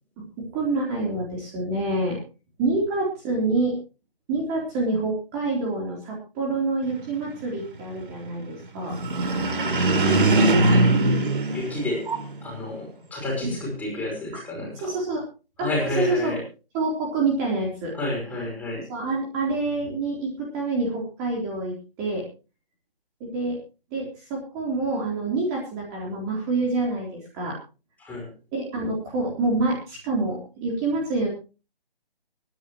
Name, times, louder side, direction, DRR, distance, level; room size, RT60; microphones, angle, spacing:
voice 1, 0.2-2.2 2.6-3.8 4.3-9.0 13.4-13.6 14.8-15.2 15.6-15.7 16.0-16.4 16.7-17.9 18.9-22.2 23.2-23.6 23.9-27.6 28.5-31.3, right 3 dB, 20° right, -2 dB, 3.9 m, -27 dB
sound 1, 8.9-12.5, right 2 dB, 60° right, 3.1 m, -21 dB
voice 2, 9.6-11.0 11.5-12.1 12.4-14.9 15.6-16.4 17.9-18.9 28.0-28.3, left 1 dB, 5° left, -2 dB, 5.1 m, -30 dB
24.0 x 10.5 x 3.2 m, 0.33 s
figure-of-eight pair, 155°, 30 cm